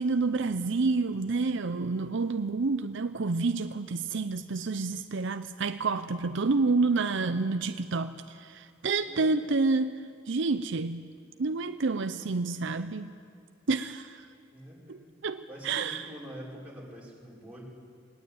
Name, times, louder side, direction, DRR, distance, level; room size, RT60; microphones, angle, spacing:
voice 1, 0.0-9.9 10.3-11.1 11.4-13.1 13.7-14.3 14.9-16.0, right 3 dB, 65° right, 10 dB, 0.6 m, -29 dB
voice 2, 9.0-9.4 14.5-15.1 15.5-17.6, equal, 5° right, -5 dB, 5.2 m, -45 dB
20.5 x 19.0 x 8.7 m, 2.2 s
head